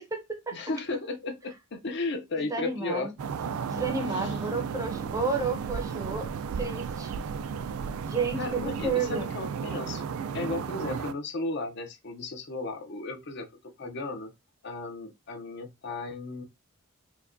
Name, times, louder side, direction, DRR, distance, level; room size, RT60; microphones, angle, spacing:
voice 1, 0.0-0.6 2.4-3.1 3.6-6.3 6.6-7.1 8.1-9.3, right 4 dB, 15° right, 0.5 m, -31 dB
voice 2, 0.5-3.1 4.0-4.4 4.9-5.3 8.4-10.0 10.3-13.5 13.8-14.3 14.6-16.4, left 3 dB, 55° left, 0.6 m, -35 dB
sound 1, 3.2-11.1, right 6 dB, 80° right, 0.3 m, -34 dB
4.5 x 2.2 x 2.5 m
head